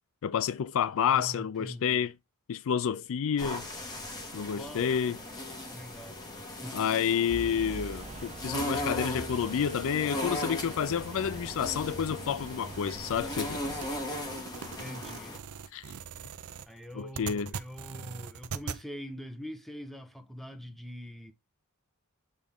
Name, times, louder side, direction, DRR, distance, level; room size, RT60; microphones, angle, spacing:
voice 1, 0.2-2.1 2.5-3.7 4.3-5.2 6.7-13.7 15.7-15.9 16.9-17.5, left 8 dB, 65° left, 0.4 m, -29 dB
voice 2, 0.9-2.1 4.5-4.9 5.7-6.2 6.6-6.8 14.8-15.4 16.7-21.3, equal, ahead, 0.9 m, -43 dB
sound 1, 3.4-15.4, left 1 dB, 20° left, 2.0 m, -38 dB
sound 2, 7.3-14.1, right 3 dB, 30° right, 0.7 m, -43 dB
sound 3, 13.8-18.8, right 6 dB, 70° right, 0.6 m, -41 dB
8.2 x 3.5 x 3.6 m
head